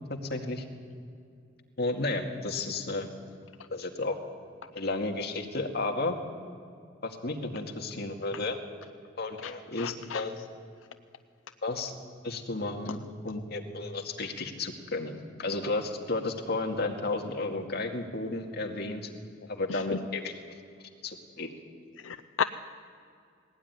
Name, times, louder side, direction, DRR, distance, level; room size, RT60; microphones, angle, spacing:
voice 1, 0.1-0.6 1.8-3.1 3.7-4.2 4.7-6.2 7.0-8.6 9.2-10.3 11.6-11.9 12.2-19.1 19.5-20.3 21.0-21.5, left 2 dB, 55° left, 2 dB, 2.1 m, -33 dB
voice 2, 9.8-10.2 19.7-19.8 22.0-22.4, left 7 dB, 85° left, 11 dB, 0.6 m, -32 dB
19.5 x 18.0 x 9.7 m, 2.4 s
head